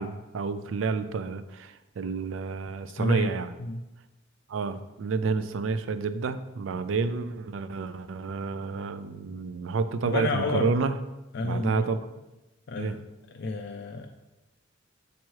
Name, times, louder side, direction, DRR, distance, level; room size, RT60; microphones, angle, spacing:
voice 1, 0.0-3.5 4.5-11.0 11.4-12.0 12.8-12.9, right 4 dB, 80° right, 12 dB, 0.4 m, -29 dB
voice 2, 3.0-3.3 3.6-3.8 10.1-10.7 11.3-11.9 12.7-13.0 13.3-14.1, left 2 dB, 55° left, 3 dB, 0.4 m, -30 dB
7.2 x 3.0 x 4.5 m, 1.0 s
head